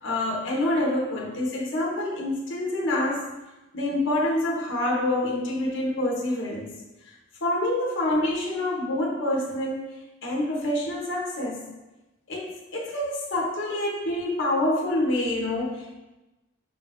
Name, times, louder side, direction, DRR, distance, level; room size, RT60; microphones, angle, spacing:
voice 1, 0.0-3.3 3.7-6.7 7.4-11.7 12.3-15.9, left 1 dB, 70° left, -3 dB, 1.0 m, -27 dB
5.7 x 2.5 x 3.4 m, 1.0 s
head